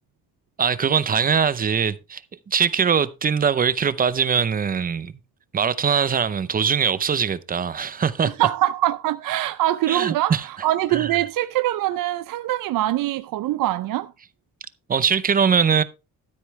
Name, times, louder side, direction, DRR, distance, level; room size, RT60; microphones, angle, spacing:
voice 1, 0.6-2.2 2.5-5.1 5.5-8.3 9.9-10.4 10.9-11.1 14.9-15.8, right 7 dB, 25° right, 0.6 m, -21 dB
voice 2, 8.4-14.1, right 14 dB, 65° right, 0.5 m, -23 dB
13.0 x 8.0 x 3.2 m
cardioid pair, 165°, 36 cm